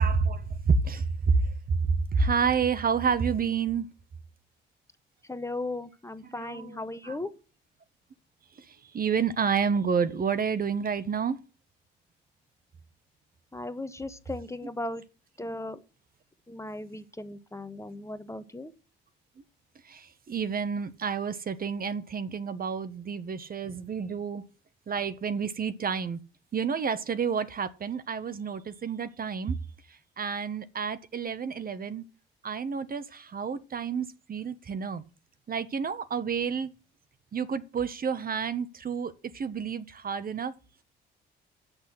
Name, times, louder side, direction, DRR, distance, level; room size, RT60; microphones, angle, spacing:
voice 1, 0.0-1.4 2.1-3.9 6.4-7.2 8.9-11.4 19.9-24.5 24.9-26.2 26.5-29.5 30.2-32.0 32.4-35.0 35.5-36.7 37.3-40.5, right 6 dB, 45° right, 1.2 m, -29 dB
voice 2, 5.3-7.3 13.5-15.0 15.4-15.8 16.5-18.7, left 2 dB, 15° left, 1.3 m, -37 dB
8.2 x 6.4 x 7.7 m
hypercardioid pair, 55°, 21 cm